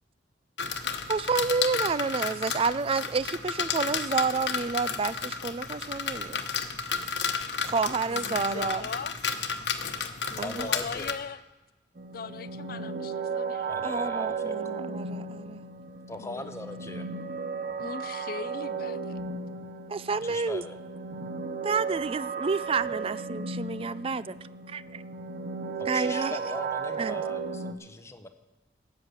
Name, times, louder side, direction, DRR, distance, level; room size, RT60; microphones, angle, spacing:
sound 1, 0.6-11.1, left 6 dB, 70° left, 1.1 m, -32 dB
voice 1, 1.1-6.4 7.6-8.8 10.4-10.7 13.8-15.6 19.9-20.6 21.6-24.4 24.7-25.0 25.9-26.4 27.0-27.2, right 4 dB, 30° right, 0.3 m, -29 dB
voice 2, 8.1-9.1 10.3-11.4 12.1-13.9 16.2-16.5 17.8-19.2, left 5 dB, 50° left, 0.5 m, -40 dB
voice 3, 10.4-11.1 13.6-14.6 16.1-17.1 20.2-20.8 25.8-28.3, left 2 dB, 15° left, 0.8 m, -40 dB
sound 2, 12.0-27.7, right 4 dB, 50° right, 0.9 m, -35 dB
sound 3, 17.6-18.1 18.4-18.8 19.1-19.6 20.0-20.4 21.0-21.6 21.8-22.3 22.7-23.3 23.6-23.7, equal, 70° right, 1.9 m, -55 dB
13.5 x 8.3 x 7.9 m
head